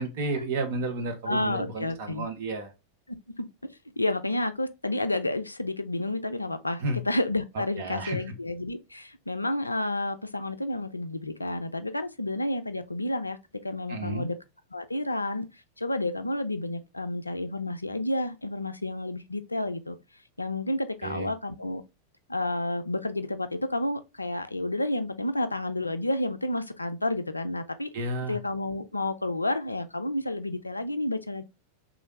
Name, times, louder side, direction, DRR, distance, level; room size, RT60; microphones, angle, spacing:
voice 1, 0.0-2.7 6.8-7.0 7.5-8.4 13.9-14.3 21.0-21.3 27.9-28.4, right 2 dB, 50° right, 0.8 m, -32 dB
voice 2, 1.3-2.3 3.4-3.5 4.0-13.4 13.6-14.4 14.7-15.5 15.8-19.9 20.4-21.8 22.3-27.9 28.3-31.4, left 1 dB, 85° left, 0.3 m, -30 dB
3.2 x 2.5 x 3.0 m
figure-of-eight pair, 90°, 0 cm